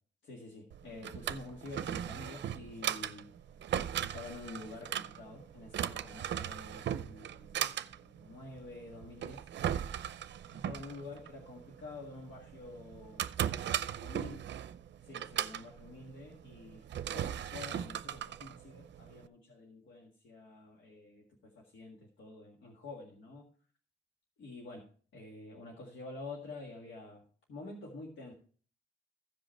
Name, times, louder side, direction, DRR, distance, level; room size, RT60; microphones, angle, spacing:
voice 1, 0.2-3.3 4.0-9.5 10.5-13.3 13.8-14.4 15.0-23.5 24.4-24.9 25.1-27.2 27.5-28.3, left 3 dB, 90° left, 0 dB, 1.8 m, -48 dB
Drawer open or close, 0.7-19.3, right 10 dB, 70° right, 0.5 m, -38 dB
15.0 x 5.3 x 4.5 m, 0.43 s
cardioid pair, 105°, 19 cm